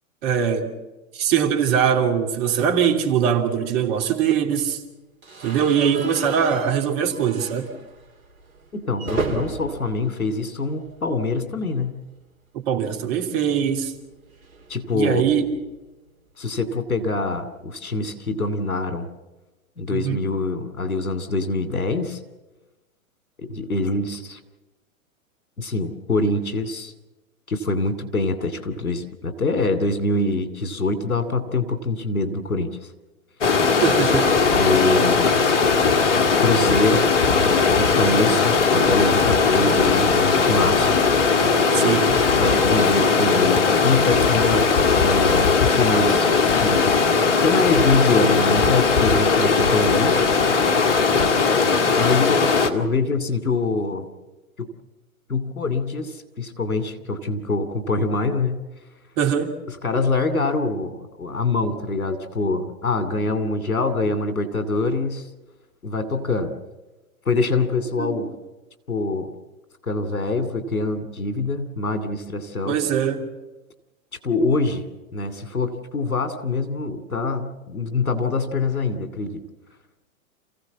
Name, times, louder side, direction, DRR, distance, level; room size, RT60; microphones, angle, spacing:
voice 1, 0.2-0.7 1.1-4.8 5.4-7.7 12.5-13.9 14.9-15.5 19.9-20.3 33.8-34.3 41.7-42.1 59.2-59.5 68.0-68.2 72.7-73.3, right 8 dB, 45° right, 3.0 m, -22 dB
sound 1, 5.2-11.3 11.6-11.8 12.0-12.1 13.4-15.7, right 4 dB, 70° right, 2.8 m, -35 dB
voice 2, 8.7-12.0 14.7-15.2 16.4-19.0 19.8-22.2 23.4-24.4 25.6-26.9 27.5-32.7 34.6-35.4 36.4-41.0 42.4-44.7 45.0-46.3 46.6-46.9 47.4-50.2 52.0-52.4 52.7-54.1 54.6-54.7 55.3-58.6 59.7-65.2 65.8-66.6 67.3-68.3 68.9-69.3 69.8-72.8 74.2-74.8 75.1-79.4, left 3 dB, 80° left, 2.7 m, -24 dB
Stream, 33.4-52.7, left 4 dB, 55° left, 2.2 m, -18 dB
28.0 x 16.0 x 7.3 m
figure-of-eight pair, 110°, 42 cm